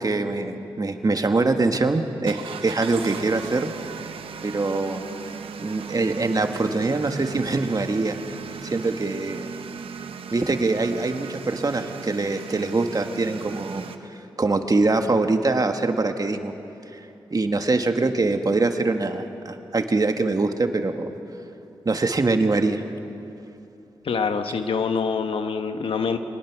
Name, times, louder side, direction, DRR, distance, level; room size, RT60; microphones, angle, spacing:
voice 1, 0.0-3.7 4.4-5.1 5.6-8.2 8.6-9.5 10.3-16.5 16.9-17.0 17.3-21.1 21.8-22.8, right 3 dB, 40° right, 6 dB, 1.6 m, -23 dB
sound 1, 2.3-14.0, right 6 dB, 90° right, 0.9 m, -37 dB
voice 2, 24.0-26.2, left 5 dB, 80° left, 7 dB, 1.2 m, -25 dB
25.0 x 19.5 x 6.1 m, 2.7 s
cardioid pair, 50°, 9 cm